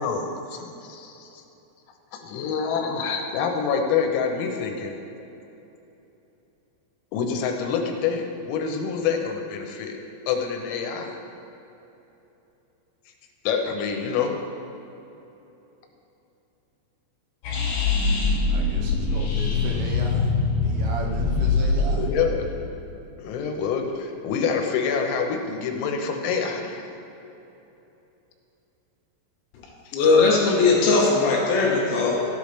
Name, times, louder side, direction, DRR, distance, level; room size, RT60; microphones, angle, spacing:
voice 1, 0.0-1.4 2.1-5.0 7.1-10.0 10.3-11.2 13.5-14.3 21.9-22.6 23.2-26.9 29.9-30.0, left 6 dB, 90° left, 3 dB, 3.6 m, -27 dB
sound 1, 17.4-22.5, left 3 dB, 55° left, 3.7 m, -23 dB
voice 2, 18.5-22.0, right 2 dB, 80° right, -1 dB, 3.4 m, -33 dB
voice 3, 29.9-32.2, left 3 dB, 75° left, -3 dB, 2.8 m, -19 dB
13.5 x 8.6 x 3.2 m, 3.0 s
omnidirectional pair, 5.9 m